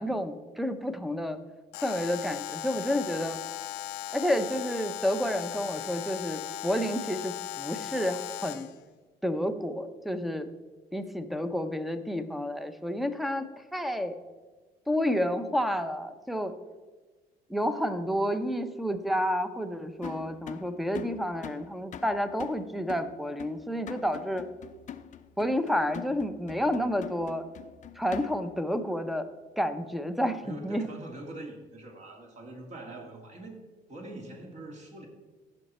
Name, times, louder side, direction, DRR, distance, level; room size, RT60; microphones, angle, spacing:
voice 1, 0.0-1.4 1.8-3.4 4.1-8.7 9.2-10.5 10.9-14.2 14.9-16.5 17.5-24.5 25.4-27.4 28.0-29.3 29.6-30.9, equal, ahead, 10 dB, 0.8 m, -30 dB
Alarm, 1.7-8.8, left 13 dB, 90° left, 0.6 m, -38 dB
sound 1, 20.0-28.6, left 9 dB, 45° left, 0.6 m, -44 dB
voice 2, 30.4-33.6 33.9-35.1, right 2 dB, 45° right, 1 dB, 2.4 m, -43 dB
15.5 x 5.9 x 4.3 m, 1.3 s
cardioid pair, 110°, 17 cm